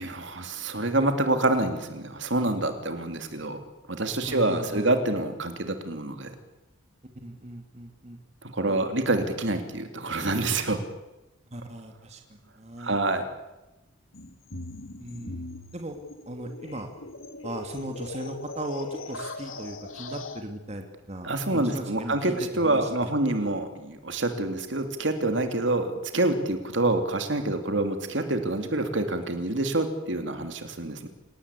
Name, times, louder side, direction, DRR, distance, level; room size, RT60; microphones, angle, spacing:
voice 1, 0.0-3.6 3.9-6.3 8.5-10.8 12.8-13.2 21.2-31.1, right 2 dB, 65° right, 6 dB, 2.9 m, -27 dB
voice 2, 4.2-4.9 7.2-8.2 8.7-8.8 11.5-13.0 15.0-15.5 15.7-16.0 16.3-16.9 17.4-22.4 22.6-23.5, right 1 dB, 35° right, 4 dB, 2.3 m, -38 dB
sound 1, 14.1-20.4, left 2 dB, 90° left, 2.6 m, -40 dB
27.0 x 19.0 x 8.4 m, 1.0 s
head